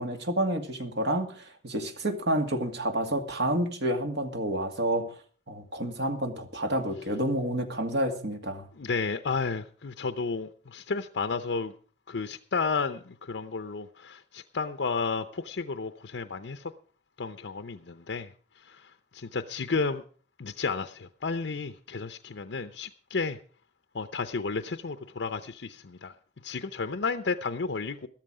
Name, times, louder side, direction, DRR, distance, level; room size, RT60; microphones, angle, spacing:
voice 1, 0.0-5.2 5.5-8.7, right 1 dB, 70° right, 5 dB, 2.2 m, -29 dB
voice 2, 8.8-11.7 12.1-16.7 17.2-18.3 18.6-20.0 20.4-23.4 23.9-26.1 26.4-28.1, left 4 dB, 90° left, 9 dB, 0.7 m, -32 dB
13.5 x 13.5 x 4.9 m, 0.41 s
head